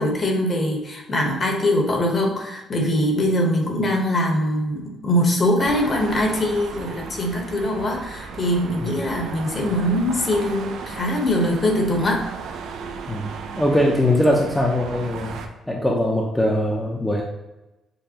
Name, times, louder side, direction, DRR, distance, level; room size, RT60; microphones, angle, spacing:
voice 1, 0.0-12.2, left 1 dB, 40° left, 1 dB, 1.2 m, -22 dB
sound 1, 5.6-15.5, right 5 dB, 80° right, 0.5 m, -35 dB
voice 2, 13.6-15.4 15.7-17.2, left 1 dB, 10° left, -2 dB, 0.7 m, -21 dB
6.7 x 2.2 x 2.9 m, 1.0 s
cardioid pair, 90°, 0 cm